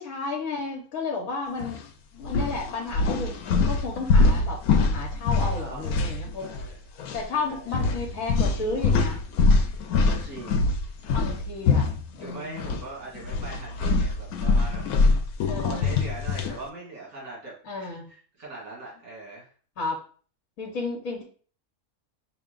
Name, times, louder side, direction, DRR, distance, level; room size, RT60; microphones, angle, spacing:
voice 1, 0.0-1.8 2.1-3.3 3.7-4.6 4.9-6.5 7.1-9.2 11.1-12.8 15.4-15.9 17.6-18.1 19.8-20.0 20.6-21.2, left 3 dB, 70° left, -1 dB, 1.3 m, -32 dB
sound 1, 1.6-1.8 2.2-6.7 7.0-7.2 7.7-12.8 13.1-16.6, left 3 dB, 90° left, 1.1 m, -24 dB
voice 2, 5.5-6.8 7.2-8.0 10.0-10.7 12.2-14.8 15.5-19.5, right 3 dB, 75° right, -5 dB, 2.3 m, -41 dB
5.6 x 2.3 x 3.7 m, 0.42 s
omnidirectional pair, 1.5 m